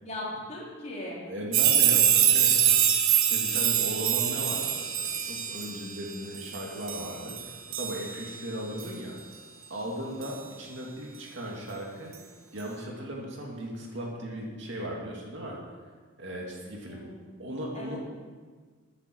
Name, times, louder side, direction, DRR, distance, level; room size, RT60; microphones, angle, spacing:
voice 1, 0.0-1.2 16.9-17.2 17.7-18.0, left 1 dB, 30° left, -5 dB, 3.4 m, -38 dB
voice 2, 1.3-9.2 9.7-12.1 12.5-15.6 16.2-17.0 17.4-18.0, equal, 55° right, -2 dB, 2.5 m, -37 dB
sound 1, 1.5-8.4 8.8-8.9 10.2-10.3, right 10 dB, 75° right, 1.0 m, -25 dB
15.0 x 9.9 x 4.7 m, 1.5 s
head